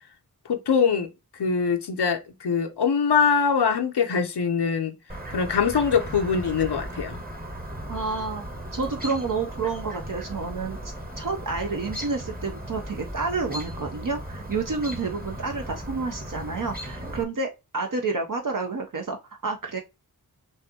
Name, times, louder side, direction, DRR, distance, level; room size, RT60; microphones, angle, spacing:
voice 1, 0.4-1.1 1.4-4.9 5.3-7.2, left 6 dB, 90° left, 0.7 m, -23 dB
Chirp tweet, 5.1-17.2, equal, 25° right, 1.2 m, -37 dB
voice 2, 7.9-8.4 8.7-19.2 19.4-19.8, right 4 dB, 55° right, 0.7 m, -29 dB
6.3 x 2.6 x 2.8 m
wide cardioid pair, 40°, 39 cm